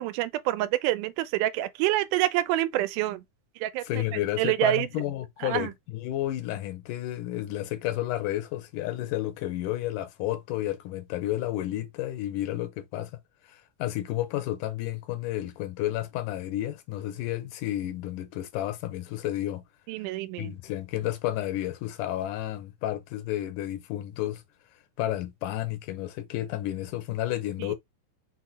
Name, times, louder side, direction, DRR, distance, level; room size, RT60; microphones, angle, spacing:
voice 1, 0.0-3.2 3.6-4.9 5.4-5.7 19.9-20.6 27.6-27.7, right 15 dB, 85° right, 2.1 m, -27 dB
voice 2, 3.9-13.2 13.5-19.6 20.4-24.4 25.0-27.7, left 14 dB, 90° left, 2.3 m, -31 dB
5.8 x 2.2 x 4.0 m
omnidirectional pair, 3.6 m